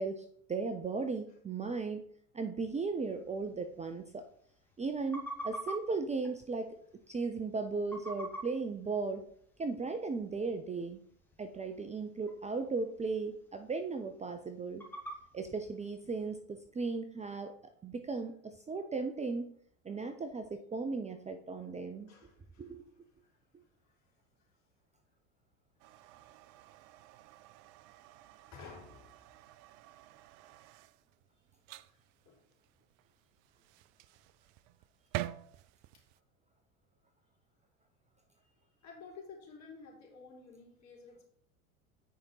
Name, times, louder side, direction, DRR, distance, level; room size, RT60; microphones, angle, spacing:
voice 1, 0.0-2.1 2.3-4.3 4.8-6.8 7.1-9.2 9.6-11.0 11.4-14.8 15.3-17.6 17.8-19.5 19.8-22.1 22.6-22.8, right 4 dB, 15° right, 7 dB, 0.7 m, -36 dB
sound 1, 2.9-16.4, right 1 dB, 5° left, 2.2 m, -49 dB
voice 2, 22.1-22.8 23.2-24.1 26.2-26.3 28.5-29.1 31.3-31.4 31.8-31.9 32.3-32.4 35.9-36.0 38.4-41.3, left 4 dB, 40° left, -2 dB, 4.0 m, -53 dB
sound 2, 25.8-36.2, right 15 dB, 50° right, 0.5 m, -48 dB
9.3 x 5.2 x 4.6 m, 0.65 s
hypercardioid pair, 80°, 42 cm